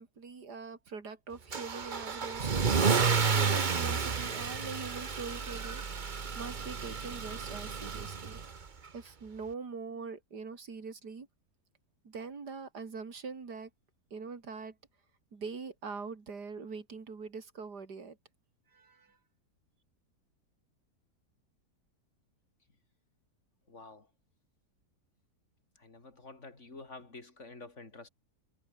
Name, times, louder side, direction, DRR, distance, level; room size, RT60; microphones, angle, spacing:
voice 1, 0.0-2.8 3.3-5.8 6.3-8.4 8.9-11.3 12.0-13.7 14.1-14.8 15.3-18.2 18.7-19.2, right 5 dB, 85° right, 3.4 m, -43 dB
Car / Engine starting / Accelerating revving vroom, 1.5-8.6, right 5 dB, 35° right, 1.1 m, -31 dB
voice 2, 23.7-24.1 25.8-28.1, left 3 dB, 45° left, 4.1 m, -49 dB
omnidirectional pair, 1.7 m